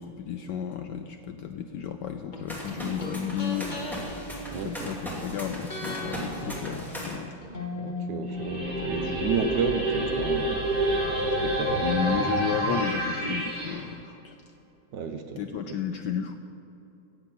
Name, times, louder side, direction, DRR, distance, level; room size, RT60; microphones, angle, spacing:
voice 1, 0.0-3.8 4.4-7.3 11.8-14.4 15.4-16.4, left 8 dB, 70° left, 6 dB, 1.0 m, -32 dB
sound 1, 2.3-5.3 5.7-9.5 9.8-9.9, left 2 dB, 25° left, 1.2 m, -38 dB
sound 2, 2.5-7.1, equal, ahead, 2.3 m, -38 dB
voice 2, 4.5-4.9 7.8-10.7 11.3-11.8 14.9-15.8, right 5 dB, 65° right, 6 dB, 1.2 m, -32 dB
sound 3, 8.3-13.8, right 1 dB, 40° right, 3.6 m, -28 dB
14.0 x 8.9 x 6.0 m, 2.8 s
omnidirectional pair, 2.4 m